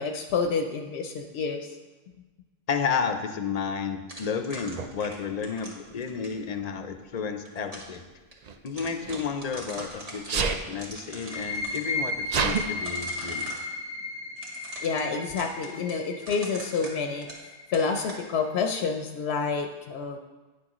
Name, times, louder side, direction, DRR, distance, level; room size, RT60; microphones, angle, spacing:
voice 1, 0.0-1.8 14.8-17.3 17.7-20.2, left 5 dB, 85° left, 4 dB, 0.8 m, -28 dB
voice 2, 2.7-8.1 8.6-13.6, left 6 dB, 50° left, 7 dB, 0.5 m, -32 dB
sound 1, 4.1-6.4 7.2-8.0 8.3-8.4 8.7-10.3 10.7-11.8 12.4-13.7 14.4-17.5 17.7-18.2, right 1 dB, 35° right, 1.4 m, -42 dB
Sneeze, 4.8-4.9 6.0-6.4 8.4-9.9 10.3-10.6 11.4-11.5 11.7-12.6, right 5 dB, 55° right, 0.5 m, -29 dB
sound 2, 11.2-18.6, left 3 dB, 85° right, 2.1 m, -35 dB
9.8 x 6.1 x 3.0 m, 1.2 s
omnidirectional pair, 1.1 m